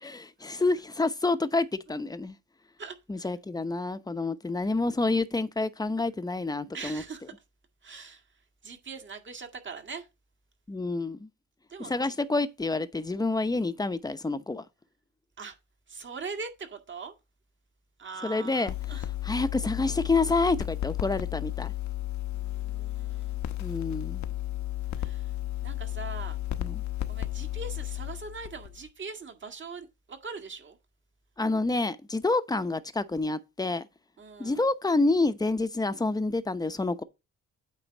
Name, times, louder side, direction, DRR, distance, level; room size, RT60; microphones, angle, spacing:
voice 1, 0.0-2.4 3.1-7.0 10.7-11.3 11.8-14.6 18.2-21.7 23.6-24.2 26.6-26.8 31.4-33.8 34.4-37.0, left 3 dB, 15° left, 0.8 m, -28 dB
voice 2, 2.8-3.3 6.7-7.2 7.8-8.2 8.6-10.1 11.7-12.1 15.4-15.6 15.9-17.1 18.0-19.1 22.3-23.4 25.0-25.3 25.6-26.4 27.1-30.8 34.2-34.7, right 4 dB, 40° right, 1.8 m, -41 dB
sound 1, 18.7-28.9, left 14 dB, 70° left, 1.0 m, -33 dB
8.9 x 3.8 x 6.1 m
cardioid pair, 90°, 30 cm